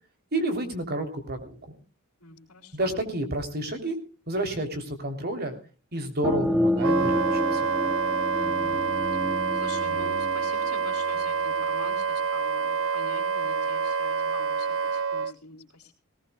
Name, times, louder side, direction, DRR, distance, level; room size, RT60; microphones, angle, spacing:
voice 1, 0.3-1.6 2.7-4.0 4.3-5.6 5.9-7.7, right 1 dB, 45° right, 6 dB, 3.2 m, -30 dB
voice 2, 2.2-3.1 8.3-8.9 9.5-15.9, left 3 dB, 85° left, -5 dB, 3.8 m, -45 dB
sound 1, 6.2-11.6, left 1 dB, 5° right, 0.9 m, -29 dB
Wind instrument woodwind instrument, 6.8-15.3, right 5 dB, 65° right, 0.6 m, -27 dB
19.0 x 18.5 x 2.3 m, 0.37 s
head